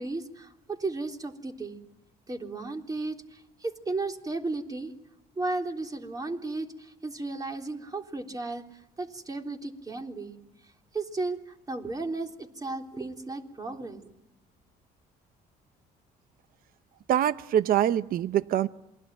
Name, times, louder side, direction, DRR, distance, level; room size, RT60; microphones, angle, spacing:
voice 1, 0.0-1.8 2.3-4.9 5.4-10.4 10.9-14.1, right 3 dB, 20° right, 3 dB, 3.7 m, -34 dB
voice 2, 17.1-18.7, right 11 dB, 60° right, 13 dB, 0.9 m, -24 dB
28.0 x 21.5 x 9.1 m, 0.90 s
cardioid pair, 110°, 17 cm